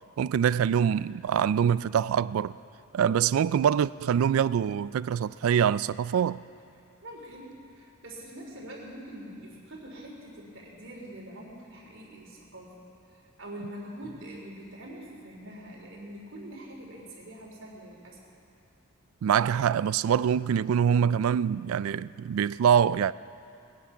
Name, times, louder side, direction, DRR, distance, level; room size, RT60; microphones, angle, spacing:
voice 1, 0.2-2.5 2.9-6.4 19.2-23.1, right 8 dB, 85° right, 0.3 m, -24 dB
voice 2, 7.0-12.9 13.1-18.2, right 1 dB, 65° right, 3.4 m, -44 dB
21.0 x 10.0 x 5.7 m
head